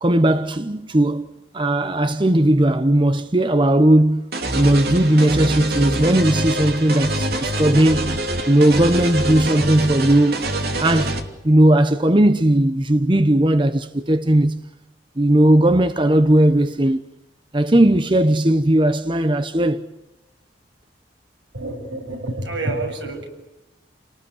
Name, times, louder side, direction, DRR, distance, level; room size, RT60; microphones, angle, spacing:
voice 1, 0.0-4.2 4.6-8.2 8.5-10.5 10.8-11.2 11.4-14.6 15.2-17.0 17.5-19.9, right 1 dB, 25° right, 0.9 m, -17 dB
sound 1, 4.3-11.2, right 1 dB, 55° right, 2.8 m, -25 dB
voice 2, 21.5-23.3, right 2 dB, 80° right, 7.5 m, -28 dB
29.5 x 19.0 x 9.7 m
head